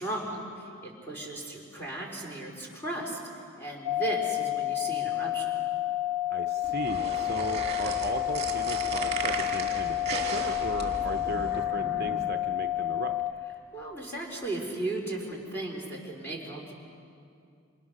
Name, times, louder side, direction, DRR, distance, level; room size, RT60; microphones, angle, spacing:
voice 1, 0.0-3.2 3.6-5.5 13.7-16.7, right 2 dB, 10° left, -2 dB, 4.4 m, -36 dB
sound 1, 3.9-13.3, left 14 dB, 65° left, 0.7 m, -30 dB
voice 2, 6.3-13.1, right 3 dB, 45° right, 6 dB, 0.8 m, -37 dB
sound 2, 6.6-11.6, right 4 dB, 30° right, 2.2 m, -36 dB
sound 3, 9.6-13.4 13.8-13.9 14.5-14.7, equal, 45° left, 2.3 m, -43 dB
28.0 x 27.0 x 6.5 m, 2.4 s
head